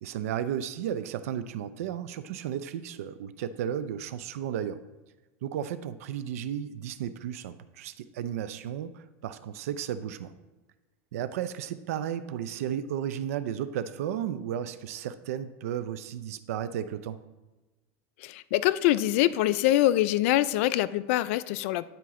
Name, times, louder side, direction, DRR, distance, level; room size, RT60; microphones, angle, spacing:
voice 1, 0.0-4.8 5.4-10.3 11.1-17.2, right 9 dB, 85° right, 12 dB, 0.5 m, -34 dB
voice 2, 18.2-21.8, left 14 dB, 65° left, 16 dB, 0.3 m, -24 dB
9.4 x 4.5 x 3.7 m, 1.2 s
supercardioid pair, 140°, 8 cm